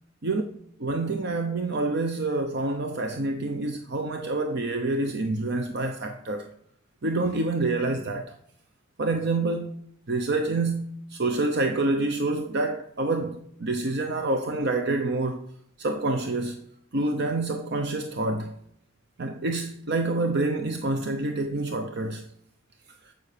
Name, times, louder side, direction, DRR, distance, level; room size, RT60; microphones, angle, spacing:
voice 1, 0.8-6.5 7.0-8.3 9.0-9.7 10.1-15.4 15.8-16.6 16.9-18.6 19.2-22.2, right 2 dB, 60° right, 0.8 m, -27 dB
14.5 x 5.6 x 6.7 m
head